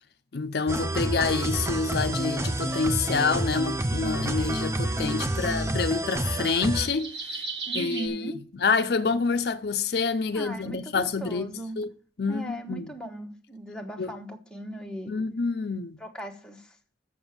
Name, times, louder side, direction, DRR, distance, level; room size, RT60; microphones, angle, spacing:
voice 1, 0.3-7.4 7.7-8.3 8.6-11.5 11.8-11.9 12.2-12.9 14.0-14.1 15.1-16.0, left 4 dB, 60° left, 0.5 m, -27 dB
sound 1, 0.7-6.9, right 1 dB, 15° right, 0.5 m, -29 dB
sound 2, 2.4-8.1, right 4 dB, 70° right, 1.7 m, -39 dB
voice 2, 7.7-8.4 10.3-11.8 12.3-15.1 16.0-16.7, right 1 dB, 5° left, 1.0 m, -38 dB
7.0 x 6.7 x 7.1 m
head